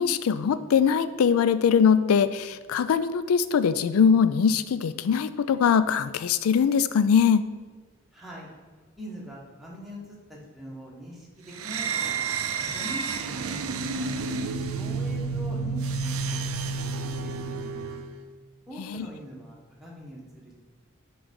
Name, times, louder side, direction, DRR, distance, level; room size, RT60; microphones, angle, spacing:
voice 1, 0.0-7.4 18.8-19.1, left 7 dB, 80° left, 14 dB, 0.3 m, -22 dB
voice 2, 8.1-8.5 9.0-12.3 12.7-14.4 14.7-16.4 17.0-17.9 18.7-20.6, right 1 dB, ahead, -4 dB, 1.2 m, -42 dB
sound 1, 11.5-18.1, right 4 dB, 75° right, 0.4 m, -30 dB
7.1 x 3.3 x 5.2 m, 1.4 s
head